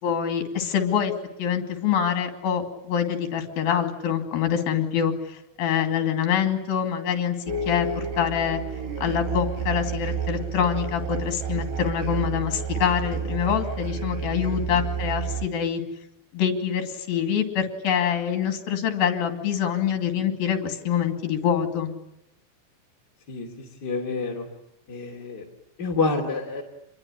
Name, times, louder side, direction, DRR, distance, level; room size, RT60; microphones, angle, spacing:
voice 1, 0.0-1.1 1.4-5.1 5.6-7.4 7.7-8.6 9.0-15.8 16.3-21.9, left 8 dB, 60° left, 6 dB, 4.2 m, -25 dB
sound 1, 7.5-15.5, right 6 dB, 70° right, 4.8 m, -30 dB
voice 2, 23.3-24.5 24.9-25.4 25.8-26.6, left 3 dB, 25° left, 0 dB, 2.9 m, -28 dB
27.5 x 21.5 x 10.0 m, 0.81 s
omnidirectional pair, 4.9 m